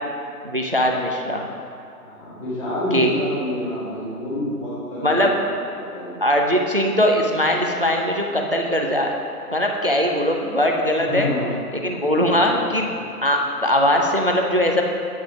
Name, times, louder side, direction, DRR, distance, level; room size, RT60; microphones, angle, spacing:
voice 1, 0.4-1.5 2.9-3.1 5.0-5.3 6.2-9.1 9.5-11.3 11.8-12.9 13.2-14.8, equal, 40° right, 2 dB, 0.4 m, -20 dB
voice 2, 2.0-6.1 11.1-11.5 12.1-12.6, left 1 dB, 20° left, -10 dB, 1.8 m, -28 dB
8.6 x 6.1 x 4.7 m, 2.5 s
figure-of-eight pair, 160°, 48 cm